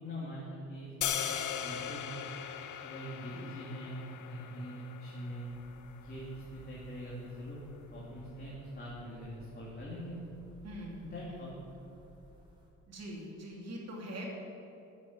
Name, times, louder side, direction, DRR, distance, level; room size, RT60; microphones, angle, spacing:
voice 1, 0.0-2.2 2.8-5.5 6.0-7.6 7.9-10.2 11.0-11.5, equal, 35° left, -6 dB, 3.0 m, -43 dB
sound 1, 1.0-7.1, left 9 dB, 75° left, 0.9 m, -40 dB
sound 2, 5.5-12.7, right 1 dB, 15° right, 3.4 m, -58 dB
voice 2, 10.6-11.5 12.9-14.3, equal, 55° right, -2 dB, 2.9 m, -44 dB
9.3 x 8.3 x 9.4 m, 2.9 s
cardioid pair, 90°, 30 cm